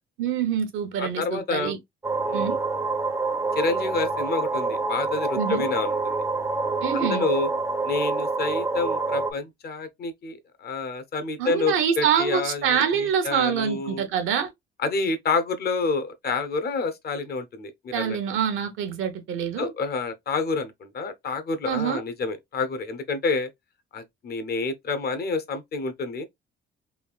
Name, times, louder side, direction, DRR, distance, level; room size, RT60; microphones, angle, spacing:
voice 1, 0.2-1.8 2.3-2.6 5.4-5.6 6.8-7.2 11.4-14.5 17.9-19.7 21.7-22.0, right 8 dB, 85° right, 0.8 m, -25 dB
voice 2, 1.0-1.8 2.3-2.6 3.6-6.2 6.9-7.5 7.8-14.0 14.8-18.2 19.6-23.5 23.9-26.2, left 4 dB, 55° left, 0.7 m, -28 dB
sound 1, 2.0-9.3, right 3 dB, 15° right, 0.4 m, -27 dB
3.3 x 2.4 x 2.3 m
cardioid pair, 90°, 20 cm